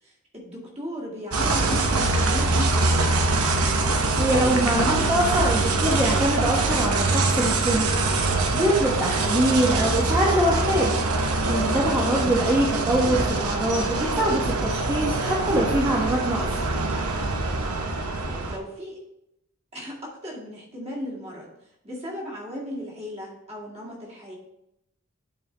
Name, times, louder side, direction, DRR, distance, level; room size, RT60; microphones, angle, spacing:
voice 1, 0.0-3.1 18.2-19.0 19.7-21.5 21.8-24.4, equal, 30° right, -4 dB, 2.1 m, -36 dB
sound 1, 1.3-18.6, right 3 dB, 85° right, 0.9 m, -24 dB
voice 2, 4.1-16.5, right 1 dB, 15° right, -5 dB, 1.0 m, -24 dB
11.5 x 4.5 x 3.3 m, 0.83 s
head